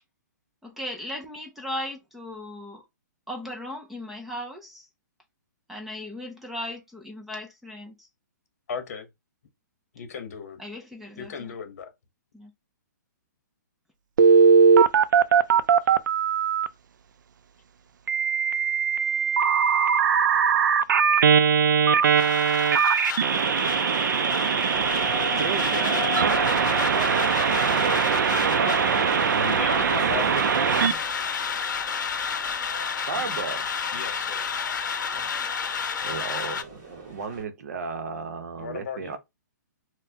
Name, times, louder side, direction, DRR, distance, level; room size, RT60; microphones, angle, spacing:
voice 1, 0.6-2.8 3.3-4.9 5.7-8.1 10.6-11.3 12.3-12.5, left 1 dB, ahead, 0.4 m, -37 dB
voice 2, 8.7-9.1 9.9-10.6 11.2-11.9 29.1-30.5 33.9-34.5 38.6-39.2, left 6 dB, 50° left, 0.9 m, -35 dB
Telephone, 14.2-16.7 18.1-30.9, right 7 dB, 80° right, 0.4 m, -21 dB
sound 1, 22.2-36.6, left 6 dB, 80° left, 0.6 m, -31 dB
sound 2, 24.7-37.4, left 3 dB, 20° right, 1.2 m, -38 dB
voice 3, 24.9-29.4 30.2-31.1 33.1-33.7 35.1-35.3 36.0-39.2, right 5 dB, 55° right, 0.8 m, -34 dB
4.1 x 2.1 x 2.7 m
hypercardioid pair, 170°, 10 cm